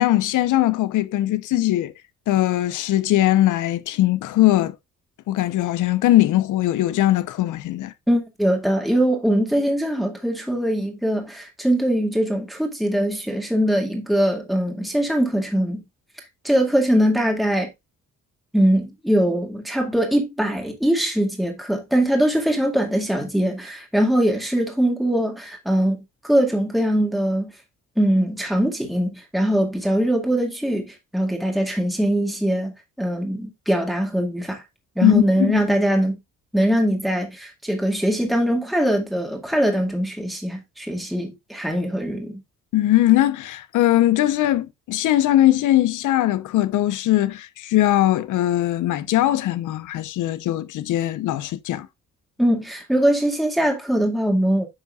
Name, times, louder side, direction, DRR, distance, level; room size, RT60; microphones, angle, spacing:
voice 1, 0.0-1.9 2.3-4.7 5.3-7.9 35.0-35.6 42.7-51.9, left 14 dB, 85° left, 0.8 m, -20 dB
voice 2, 8.1-15.8 16.4-17.7 18.5-27.5 28.0-34.6 35.0-36.1 36.5-42.4 52.4-54.7, right 1 dB, ahead, 2.1 m, -22 dB
9.8 x 5.4 x 2.4 m
cardioid pair, 90°, 30 cm